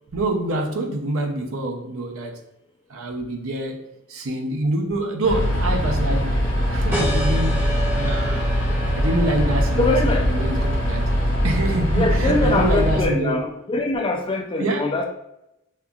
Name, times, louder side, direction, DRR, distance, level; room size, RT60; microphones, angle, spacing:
voice 1, 0.1-2.4 2.9-3.8 4.1-6.4 6.7-8.5 8.9-11.1 11.4-13.4 14.6-14.9, right 1 dB, 75° right, 3 dB, 0.6 m, -26 dB
sound 1, 5.2-13.1, equal, 55° left, 1.2 m, -22 dB
sound 2, 6.9-12.1, equal, 10° right, 0.6 m, -32 dB
voice 2, 9.8-10.3 11.9-15.1, left 2 dB, 25° left, 3 dB, 0.3 m, -23 dB
5.5 x 2.3 x 2.3 m, 0.86 s
head